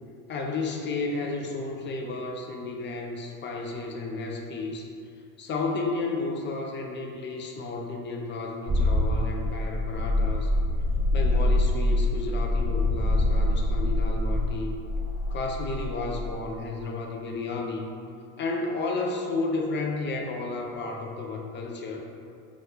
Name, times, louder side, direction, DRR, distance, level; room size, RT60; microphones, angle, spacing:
voice 1, 0.3-4.9 5.4-10.5 11.1-14.8 15.3-17.9 18.4-22.1, left 3 dB, 25° left, 1 dB, 0.4 m, -32 dB
sound 1, 8.7-16.3, left 1 dB, 20° right, 0.8 m, -25 dB
3.0 x 2.3 x 3.4 m, 2.5 s
hypercardioid pair, 60°, 44 cm